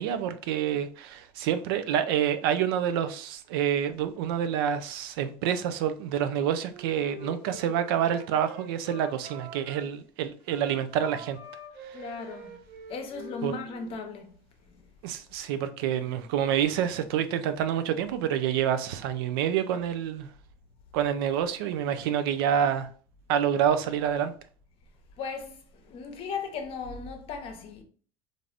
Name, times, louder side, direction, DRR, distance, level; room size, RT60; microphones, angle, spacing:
voice 1, 0.0-11.4 11.9-12.0 13.4-13.5 15.0-20.3 20.9-22.9 23.3-24.3, right 9 dB, 85° right, 0.4 m, -27 dB
Wind instrument woodwind instrument, 6.5-9.8 10.4-14.0, right 2 dB, 25° right, 1.1 m, -45 dB
voice 2, 11.9-12.6 12.9-14.9 25.2-27.8, left 5 dB, 50° left, 0.7 m, -37 dB
3.2 x 2.6 x 2.5 m
supercardioid pair, 110°, 12 cm